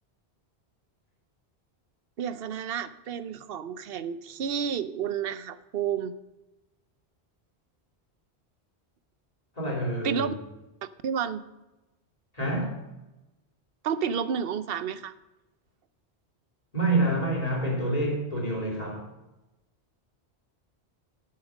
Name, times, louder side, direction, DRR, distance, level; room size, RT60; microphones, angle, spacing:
voice 1, 2.2-6.1 10.0-10.3 11.0-11.4 13.8-15.1, right 7 dB, 65° right, 14 dB, 0.8 m, -30 dB
voice 2, 9.6-10.3 12.3-12.8 16.7-19.0, right 1 dB, 35° left, -2 dB, 3.3 m, -27 dB
8.8 x 8.6 x 6.2 m, 1.0 s
omnidirectional pair, 1.1 m